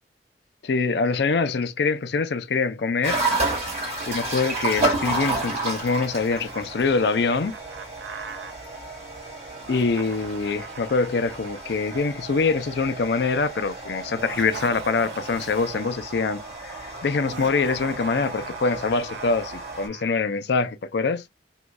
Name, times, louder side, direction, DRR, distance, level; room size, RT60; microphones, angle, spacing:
voice 1, 0.6-3.2 4.1-7.6 9.7-21.3, left 4 dB, 65° left, 0.4 m, -24 dB
sound 1, 3.0-19.9, right 2 dB, 40° right, 1.9 m, -32 dB
Laughter, 5.1-8.5 9.5-12.8 14.0-16.1 17.2-20.1, right 5 dB, 75° right, 0.5 m, -41 dB
3.8 x 3.0 x 2.2 m
head